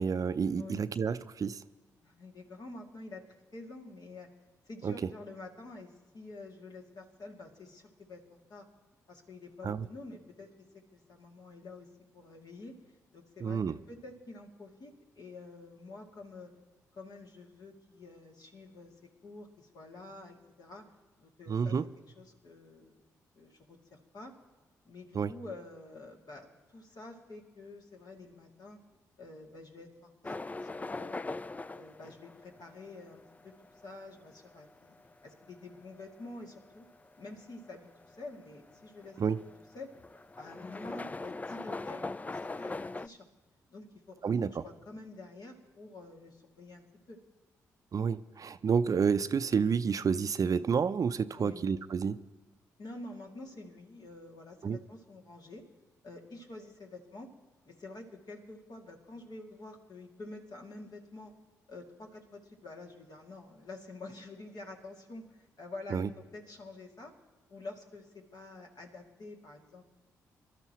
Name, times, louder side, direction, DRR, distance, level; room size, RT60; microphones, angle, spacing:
voice 1, 0.0-1.6 4.8-4.9 9.6-9.9 13.4-13.7 21.5-21.8 25.1-25.3 39.2-39.4 44.2-44.6 47.9-52.2 54.6-54.8 65.9-66.1, right 6 dB, 45° right, 13 dB, 0.5 m, -29 dB
voice 2, 2.0-3.2 3.5-4.3 4.6-8.6 9.1-10.5 10.9-11.9 12.1-12.7 13.1-13.6 13.9-16.5 16.9-19.0 19.2-20.8 21.2-21.7 22.2-23.0 23.4-24.3 24.9-28.8 29.2-31.2 31.7-35.0 35.2-36.9 37.2-39.5 39.7-39.9 40.4-43.3 43.7-47.2 51.4-51.7 52.8-55.6 56.0-57.3 57.6-61.3 61.7-67.1 67.5-69.9, left 2 dB, 55° left, 0 dB, 2.5 m, -48 dB
sound 1, 30.2-43.1, left 3 dB, 20° left, 0.4 m, -42 dB
25.5 x 12.5 x 3.1 m, 1.2 s
hypercardioid pair, 45°, 8 cm